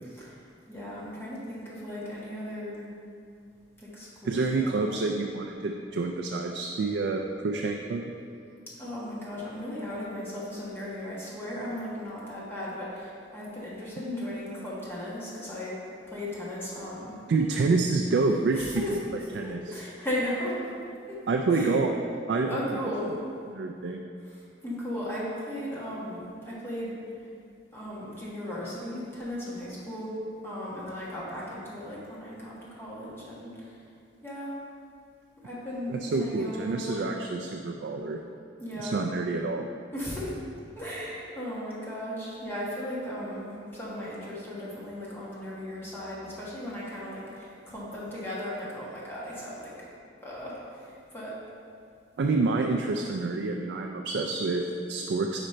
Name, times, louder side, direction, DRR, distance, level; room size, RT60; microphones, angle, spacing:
voice 1, 0.0-0.4 0.7-2.9 3.8-4.9 8.8-15.8 16.1-17.2 18.5-19.0 19.4-20.5 21.1-21.2 21.5-21.8 22.5-23.1 24.6-27.3 27.7-30.1 30.4-33.8 34.2-34.5 35.4-37.1 38.6-39.0 39.9-40.3 40.7-49.7 50.2-51.3, left 1 dB, 15° left, -7 dB, 1.5 m, -36 dB
voice 2, 4.2-8.0 17.3-19.0 19.3-19.7 21.3-21.9 22.3-22.6 23.5-24.0 35.9-38.2 38.8-39.7 52.2-55.4, right 3 dB, 70° right, 2 dB, 0.4 m, -28 dB
5.1 x 5.0 x 4.3 m, 2.4 s
head